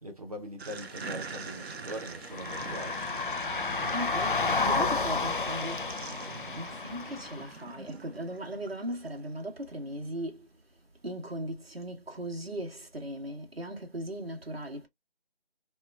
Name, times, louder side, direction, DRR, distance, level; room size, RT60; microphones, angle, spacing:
voice 1, 0.0-3.1, equal, 35° right, 0.8 m, -42 dB
sound 1, 0.6-11.0 11.3-11.4, equal, ahead, 0.4 m, -54 dB
sound 2, 0.6-9.2, right 4 dB, 85° right, 0.5 m, -44 dB
sound 3, 2.3-7.5, left 4 dB, 55° left, 0.4 m, -31 dB
voice 2, 3.9-6.2 6.5-10.5 11.0-14.9, right 1 dB, 70° right, 1.4 m, -38 dB
2.9 x 2.2 x 2.4 m
figure-of-eight pair, 165°, 31 cm